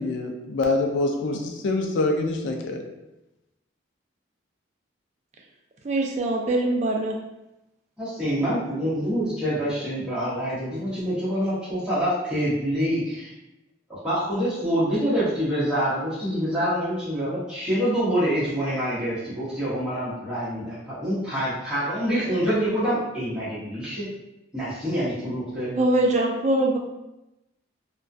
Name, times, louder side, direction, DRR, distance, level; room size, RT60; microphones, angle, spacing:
voice 1, 0.0-2.8, left 2 dB, 65° left, 2 dB, 0.4 m, -25 dB
voice 2, 5.8-7.1 25.8-26.8, right 2 dB, 35° right, 1 dB, 0.3 m, -22 dB
voice 3, 8.0-13.3 14.0-24.1 24.5-25.7, equal, 5° right, -12 dB, 1.0 m, -26 dB
2.2 x 2.2 x 2.5 m, 0.93 s
head